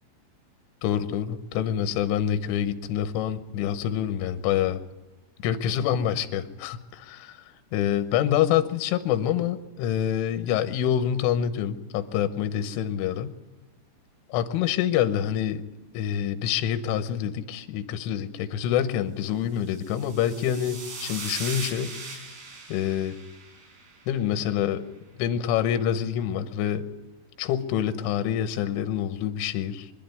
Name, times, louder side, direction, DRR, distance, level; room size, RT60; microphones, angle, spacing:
voice 1, 0.8-4.8 5.4-7.4 7.7-13.3 14.3-15.6 15.9-22.0 22.7-23.2 24.1-24.8 25.2-26.9 27.4-29.9, left 10 dB, 80° left, 10 dB, 3.4 m, -26 dB
sound 1, 19.7-24.2, right 4 dB, 85° right, 7.1 m, -39 dB
24.0 x 12.0 x 9.4 m, 1.1 s
omnidirectional pair, 5.8 m